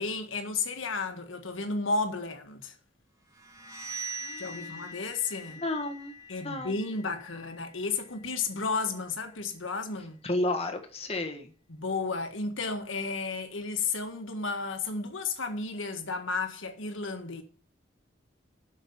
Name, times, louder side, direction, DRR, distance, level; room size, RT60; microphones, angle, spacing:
voice 1, 0.0-2.7 4.4-5.6 6.3-10.2 11.7-17.4, left 4 dB, 90° left, 1.7 m, -33 dB
sound 1, 3.3-9.0, right 2 dB, 20° right, 2.4 m, -43 dB
voice 2, 4.2-5.0 5.5-6.9 10.2-11.5, left 2 dB, 30° left, 1.5 m, -33 dB
7.9 x 6.5 x 7.0 m
head